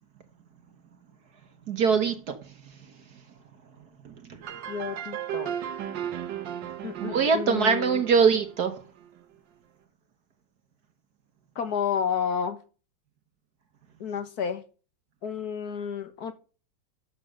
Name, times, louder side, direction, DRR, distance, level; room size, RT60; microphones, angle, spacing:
voice 1, 1.7-2.4 4.0-4.1 7.0-8.8, right 6 dB, 60° right, 1.6 m, -23 dB
sound 1, 4.4-9.0, right 10 dB, 80° right, 1.7 m, -36 dB
voice 2, 4.7-5.6 6.8-8.0 11.6-12.6 14.0-14.6 15.2-16.3, left 7 dB, 60° left, 1.9 m, -31 dB
12.0 x 6.9 x 6.4 m
omnidirectional pair, 1.9 m